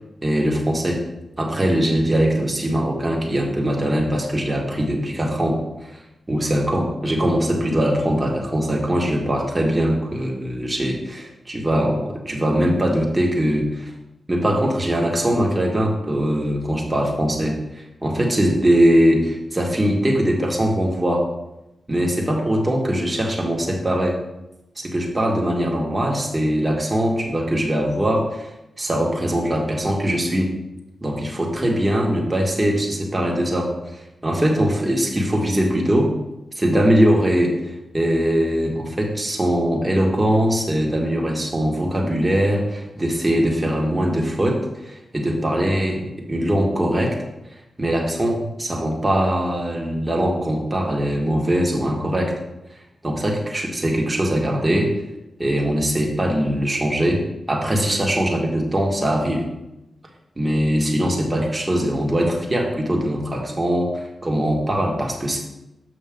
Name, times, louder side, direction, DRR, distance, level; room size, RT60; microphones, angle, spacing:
voice 1, 0.2-1.0 1.4-5.6 6.3-13.9 14.3-21.3 21.9-24.2 24.8-28.5 28.8-30.5 31.0-36.1 36.6-47.2 47.8-52.3 53.0-54.9 55.4-59.4 60.4-65.4, equal, 25° right, -1 dB, 1.8 m, -21 dB
7.5 x 6.0 x 3.8 m, 0.93 s
cardioid pair, 60°, 0 cm